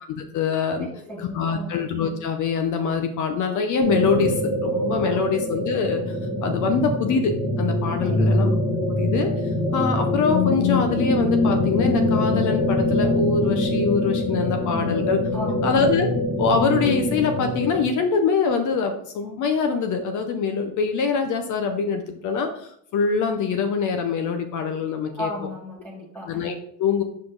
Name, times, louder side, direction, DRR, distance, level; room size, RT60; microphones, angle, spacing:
voice 1, 0.1-0.9 1.2-8.5 9.0-15.2 15.6-16.1 16.4-25.3 26.3-27.0, left 5 dB, 45° left, 6 dB, 0.7 m, -24 dB
voice 2, 0.8-1.7 5.0-5.3 8.0-8.5 15.3-15.8 25.2-26.5, equal, 5° left, -7 dB, 1.3 m, -35 dB
sound 1, 3.8-17.8, left 2 dB, 65° left, 2.7 m, -23 dB
5.7 x 4.9 x 3.8 m, 0.68 s
cardioid pair, 150°, 44 cm